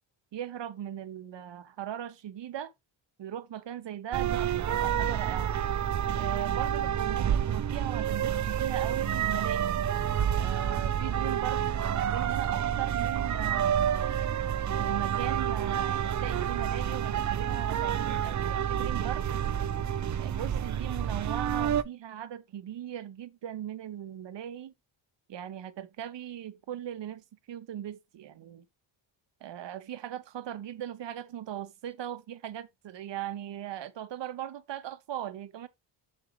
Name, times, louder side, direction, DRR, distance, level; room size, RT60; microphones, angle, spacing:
voice 1, 0.3-2.7 3.2-5.5 6.1-9.8 10.4-14.2 14.8-19.2 20.2-24.7 25.3-28.6 29.4-35.7, right 11 dB, 60° right, 1.1 m, -39 dB
sound 1, 4.1-21.8, right 9 dB, 40° right, 0.5 m, -29 dB
7.7 x 6.4 x 3.2 m
cardioid pair, 110°, 49 cm